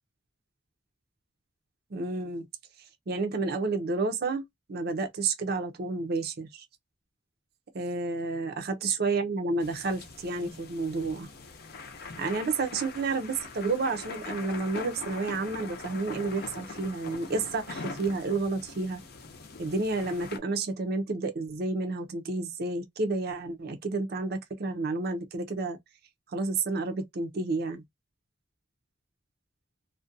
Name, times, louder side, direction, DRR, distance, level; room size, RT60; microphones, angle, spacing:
voice 1, 1.9-2.4 3.1-6.7 7.7-11.3 12.2-19.0 19.6-25.8 26.3-27.8, right 3 dB, 55° right, 0.5 m, -30 dB
sound 1, 9.6-20.4, left 4 dB, 55° left, 0.6 m, -42 dB
2.4 x 2.2 x 2.6 m
head